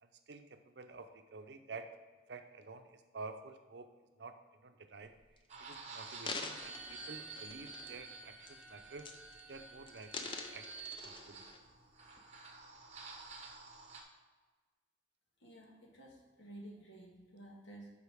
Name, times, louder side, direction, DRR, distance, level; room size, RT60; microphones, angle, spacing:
voice 1, 0.0-1.9 2.3-3.9 4.2-5.2 5.6-9.1 9.5-11.4, right 3 dB, 65° right, 7 dB, 0.6 m, -50 dB
sound 1, 5.0-5.4 6.0-8.1 8.5-8.7 9.0-9.6 9.9-11.6 12.2-12.3, left 4 dB, 25° left, 0.4 m, -46 dB
sound 2, 5.5-14.0, right 4 dB, 35° right, 0.8 m, -50 dB
Wind instrument woodwind instrument, 6.4-10.7, right 1 dB, 5° right, 2.0 m, -60 dB
voice 2, 15.4-17.9, right 1 dB, 75° left, -1 dB, 1.7 m, -53 dB
8.1 x 4.9 x 3.5 m, 1.4 s
head